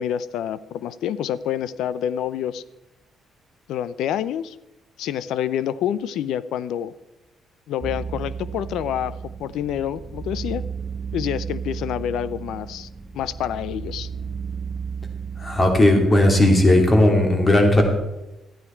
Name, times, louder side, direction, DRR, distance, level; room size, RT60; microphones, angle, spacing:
voice 1, 0.0-2.6 3.7-4.6 5.0-6.9 7.7-10.6 11.1-12.9 13.1-14.1, left 10 dB, 85° left, 17 dB, 0.5 m, -27 dB
sound 1, 7.8-15.9, right 6 dB, 40° right, 0.5 m, -33 dB
voice 2, 15.4-17.8, left 1 dB, 30° left, 3 dB, 2.7 m, -16 dB
13.0 x 9.8 x 4.4 m, 0.96 s
cardioid pair, 90°, 0 cm